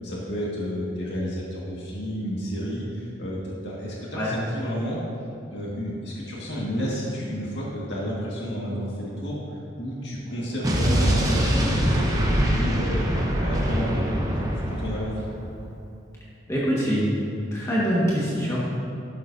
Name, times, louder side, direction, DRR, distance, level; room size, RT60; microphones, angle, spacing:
voice 1, 0.0-5.0 5.5-9.4 9.8-13.1 13.4-14.1 14.3-15.3, equal, 65° left, -6 dB, 1.9 m, -30 dB
Explosion, 10.6-15.4, equal, 20° right, 1.1 m, -24 dB
voice 2, 16.5-17.1 17.5-18.6, equal, 15° left, -8 dB, 1.6 m, -24 dB
12.5 x 12.0 x 2.7 m, 2.6 s
head